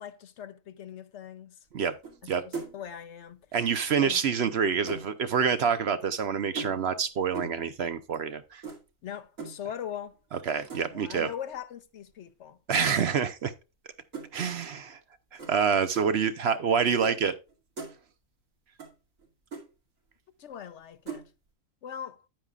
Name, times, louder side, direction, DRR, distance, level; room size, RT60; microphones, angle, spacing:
voice 1, 0.0-1.6 2.2-3.4 4.0-4.2 9.0-10.2 10.9-12.6 20.4-21.2 21.8-22.2, left 9 dB, 65° left, 0.9 m, -41 dB
sound 1, 2.0-2.3 2.5-2.9 4.1-5.1 6.6-7.0 7.3-7.7 8.6-8.8 9.4-9.6 10.7-11.0 12.8-13.0 14.1-14.3 15.4-15.6 16.0-16.1 17.0-17.2 17.5-17.9 18.8-18.9 19.2-19.3 19.5-19.7 21.1-21.3, right 4 dB, 75° right, 2.9 m, -38 dB
voice 2, 3.5-8.6 10.3-11.3 12.7-13.5 14.3-15.0 15.3-17.3, right 6 dB, 60° right, 0.9 m, -27 dB
9.5 x 9.0 x 2.4 m
omnidirectional pair, 1.4 m